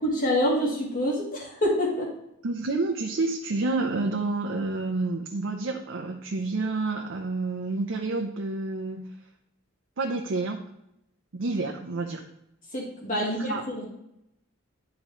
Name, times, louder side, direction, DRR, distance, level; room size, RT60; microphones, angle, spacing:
voice 1, 0.0-2.1 12.7-13.9, equal, 40° left, -3 dB, 1.8 m, -26 dB
voice 2, 2.4-9.1 10.0-10.6 11.3-12.2 13.2-13.6, right 3 dB, 65° right, 2 dB, 0.6 m, -29 dB
10.5 x 3.8 x 3.1 m, 0.83 s
head